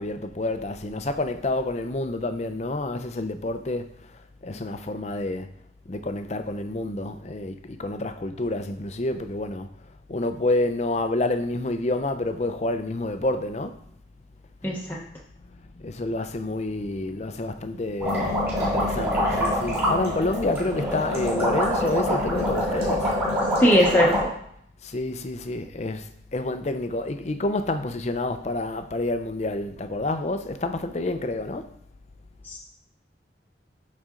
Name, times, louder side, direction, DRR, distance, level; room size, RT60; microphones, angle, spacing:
voice 1, 0.0-5.5 5.9-9.7 10.1-13.8 15.4-23.2 24.8-31.7, left 2 dB, 35° left, 0.5 m, -29 dB
voice 2, 14.6-15.0 23.6-24.1 32.4-32.6, equal, 10° left, 0.9 m, -19 dB
sound 1, 18.0-24.2, equal, 15° right, 3.2 m, -25 dB
12.5 x 4.2 x 3.7 m
head